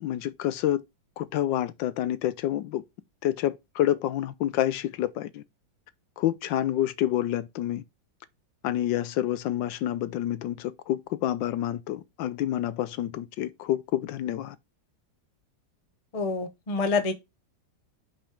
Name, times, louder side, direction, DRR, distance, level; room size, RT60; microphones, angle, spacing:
voice 1, 0.0-0.8 1.2-2.8 3.2-5.4 6.2-7.8 8.6-14.6, left 12 dB, 75° left, 1.2 m, -28 dB
voice 2, 16.1-17.2, left 4 dB, 35° left, 0.5 m, -27 dB
5.7 x 4.2 x 4.9 m
omnidirectional pair, 2.1 m